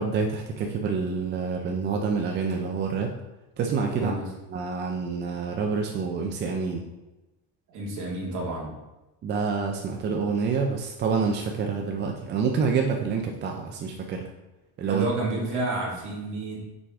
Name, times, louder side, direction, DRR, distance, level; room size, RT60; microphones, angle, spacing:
voice 1, 0.0-3.1 3.6-4.2 4.5-6.8 9.2-14.3 14.8-15.1, right 5 dB, 30° right, 2 dB, 0.4 m, -27 dB
voice 2, 3.9-4.2 7.7-8.7 14.9-16.6, right 2 dB, 50° right, -3 dB, 2.0 m, -30 dB
6.1 x 4.8 x 3.5 m, 1.0 s
cardioid pair, 150°, 39 cm